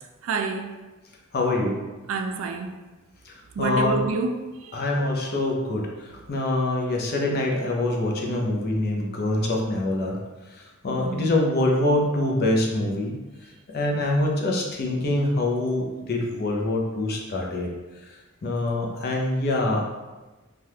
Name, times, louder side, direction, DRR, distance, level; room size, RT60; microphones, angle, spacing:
voice 1, 0.2-0.7 2.1-2.7 3.5-4.8 11.0-11.3, right 4 dB, 70° right, 0.3 m, -28 dB
voice 2, 1.3-1.8 3.6-4.0 4.7-5.8 6.3-10.2 10.8-13.1 13.7-17.7 18.4-19.8, left 2 dB, 50° left, 0.6 m, -24 dB
3.3 x 2.4 x 2.8 m
head